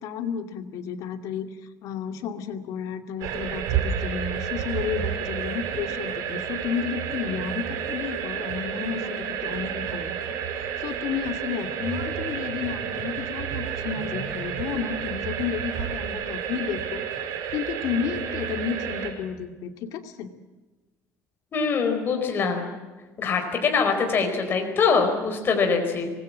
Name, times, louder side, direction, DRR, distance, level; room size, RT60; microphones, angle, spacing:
voice 1, 0.0-1.5 1.8-10.2 10.8-17.0 17.5-20.3, left 7 dB, 70° left, 7 dB, 2.5 m, -32 dB
sound 1, 3.2-19.1, right 8 dB, 85° right, 5.4 m, -30 dB
voice 2, 21.5-22.7 23.2-26.1, left 5 dB, 35° left, 3 dB, 4.5 m, -23 dB
25.5 x 20.0 x 7.5 m, 1.3 s
cardioid pair, 140°, 6 cm